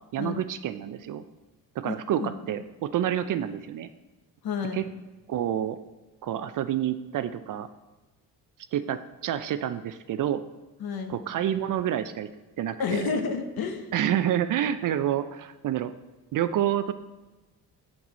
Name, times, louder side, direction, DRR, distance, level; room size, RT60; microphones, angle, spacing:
voice 1, 0.1-1.2 1.8-3.9 4.7-4.8 5.3-5.8 6.2-7.7 8.7-10.4 11.1-12.3 12.6-13.0 13.9-15.9 16.3-16.9, right 10 dB, 50° right, 12 dB, 0.4 m, -28 dB
voice 2, 1.8-2.3 4.4-4.9 10.8-11.2 12.8-13.9, left 5 dB, 55° left, 6 dB, 1.0 m, -30 dB
6.0 x 6.0 x 4.0 m, 1.1 s
supercardioid pair, 60°, 44 cm